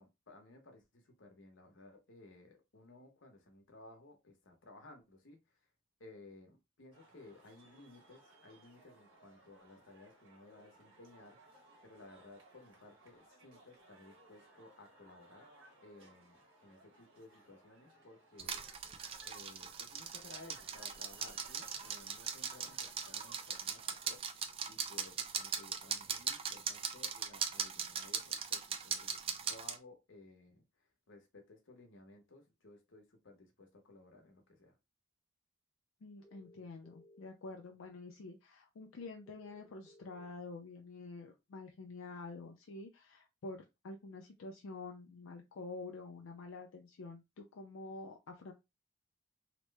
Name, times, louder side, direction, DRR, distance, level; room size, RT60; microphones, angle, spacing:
voice 1, 0.0-5.6 6.0-15.5 15.8-34.8, left 2 dB, 65° left, 0.9 m, -58 dB
sound 1, 6.9-24.2, right 2 dB, 75° right, 1.2 m, -62 dB
sound 2, 18.4-29.8, right 7 dB, 30° right, 0.3 m, -40 dB
voice 2, 36.0-48.5, left 3 dB, 90° left, 0.5 m, -48 dB
sound 3, 36.2-37.2 39.3-40.3, left 1 dB, 5° right, 0.7 m, -61 dB
2.9 x 2.0 x 3.3 m
head